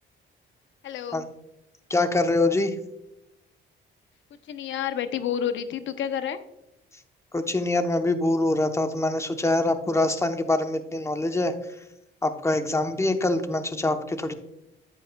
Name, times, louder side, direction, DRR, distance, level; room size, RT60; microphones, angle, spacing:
voice 1, 0.8-1.3 4.5-6.4, left 9 dB, 70° left, 10 dB, 0.8 m, -29 dB
voice 2, 1.9-2.7 7.3-11.5 12.2-14.3, left 2 dB, 15° left, 8 dB, 0.9 m, -24 dB
9.9 x 8.3 x 2.3 m, 0.88 s
cardioid pair, 90°, 20 cm